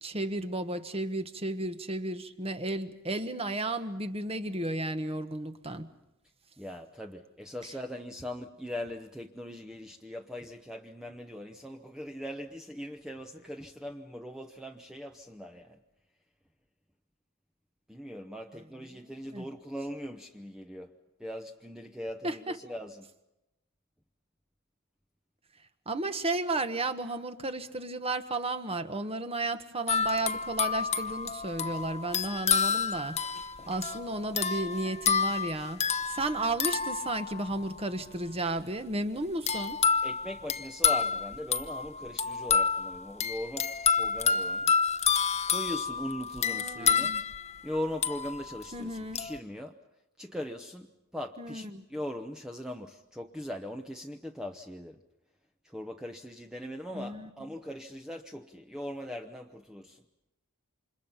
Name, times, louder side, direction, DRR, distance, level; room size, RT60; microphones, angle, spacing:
voice 1, 0.0-5.9 18.9-19.5 22.2-22.6 25.9-33.2 33.7-35.8 36.1-39.8 46.4-47.2 48.7-49.2 51.4-51.8 56.9-57.3, right 2 dB, 25° right, 9 dB, 1.3 m, -33 dB
voice 2, 6.6-15.8 17.9-20.9 21.2-23.1 40.0-44.7 45.5-47.2 47.6-49.8 50.2-55.0 55.6-60.0, left 1 dB, 5° right, 4 dB, 0.9 m, -40 dB
sound 1, 29.9-37.7 39.5-48.7 49.1-49.4, left 6 dB, 30° left, 0.9 m, -29 dB
29.0 x 26.5 x 5.8 m, 0.94 s
head